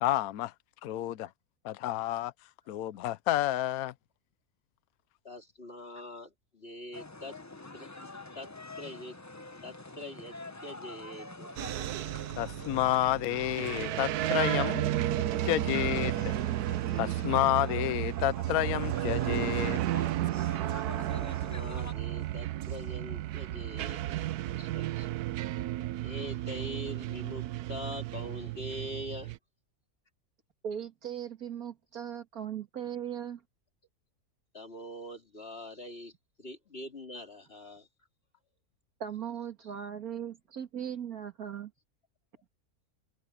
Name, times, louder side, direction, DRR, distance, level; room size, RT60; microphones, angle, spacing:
voice 1, 0.0-0.5 0.8-1.3 1.6-2.3 2.7-3.9 12.4-14.9 15.4-16.1 17.0-19.8, left 14 dB, 75° left, 1.1 m, -30 dB
voice 2, 5.2-7.4 7.7-7.9 8.4-8.5 8.8-9.2 9.6-10.4 10.6-11.5 11.8-12.2 21.2-24.2 24.5-25.1 26.0-29.3 34.5-36.1 36.4-37.9 39.6-39.7, left 1 dB, 40° left, 3.4 m, -43 dB
sound 1, 6.9-21.9, left 2 dB, 15° left, 0.6 m, -46 dB
sound 2, 11.6-29.4, right 14 dB, 90° right, 1.2 m, -33 dB
voice 3, 30.6-33.4 39.0-41.7, right 9 dB, 70° right, 2.3 m, -38 dB
open air
omnidirectional pair, 1.6 m